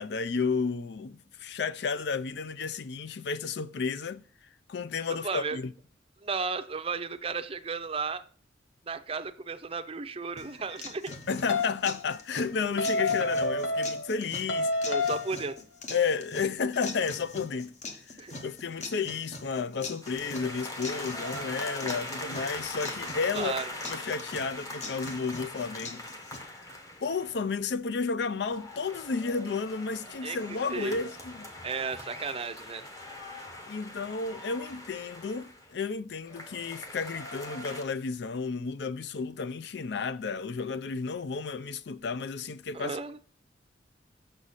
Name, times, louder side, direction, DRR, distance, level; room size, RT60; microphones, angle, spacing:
voice 1, 0.0-4.2 4.7-5.7 11.3-14.7 15.9-17.7 18.4-23.5 23.9-26.1 26.4-26.7 27.0-31.5 33.7-43.0, left 5 dB, 65° left, 0.4 m, -32 dB
voice 2, 5.1-5.6 6.2-8.2 8.9-11.1 14.9-15.6 18.2-18.4 23.3-23.6 30.2-31.0 31.6-32.9 42.7-43.2, right 4 dB, 30° right, 0.5 m, -34 dB
sound 1, 10.4-26.4, left 3 dB, 40° left, 1.1 m, -43 dB
sound 2, 11.5-11.8 12.8-14.2 14.5-15.4, left 2 dB, 85° left, 0.8 m, -28 dB
sound 3, 20.0-27.5 28.2-35.7 36.3-37.8, left 1 dB, 20° left, 1.0 m, -41 dB
6.3 x 6.3 x 4.1 m
head